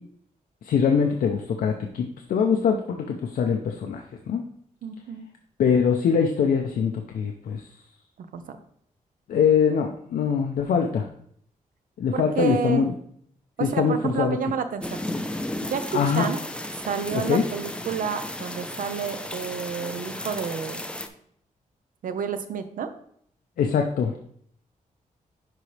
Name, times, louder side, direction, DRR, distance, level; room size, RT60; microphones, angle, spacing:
voice 1, 0.6-4.4 5.6-7.6 9.3-11.1 12.0-12.9 13.6-14.5 15.9-16.3 17.3-17.5 23.6-24.2, left 6 dB, 90° left, 3 dB, 0.7 m, -23 dB
voice 2, 4.8-5.3 8.2-8.6 12.1-12.9 13.6-15.0 15.6-16.4 16.8-20.8 22.0-22.9, right 6 dB, 75° right, 9 dB, 0.7 m, -30 dB
sound 1, 14.8-21.1, left 1 dB, 5° left, 0.5 m, -34 dB
11.0 x 4.1 x 3.3 m, 0.67 s
wide cardioid pair, 160°, 14 cm